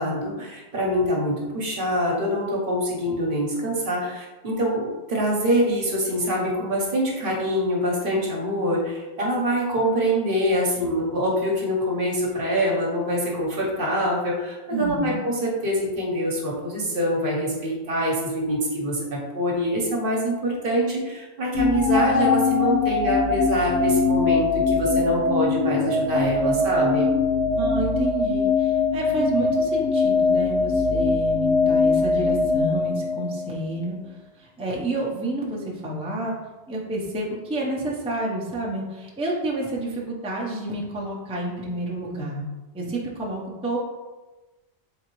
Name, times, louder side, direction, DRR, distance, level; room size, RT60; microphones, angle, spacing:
voice 1, 0.0-27.1, equal, 55° right, -3 dB, 1.0 m, -25 dB
voice 2, 14.7-15.2 27.5-36.4 36.7-42.4 42.7-43.8, right 2 dB, 5° right, -5 dB, 0.6 m, -29 dB
sound 1, 21.6-33.7, left 4 dB, 90° left, 0.9 m, -22 dB
3.8 x 3.6 x 3.0 m, 1.2 s
omnidirectional pair, 1.1 m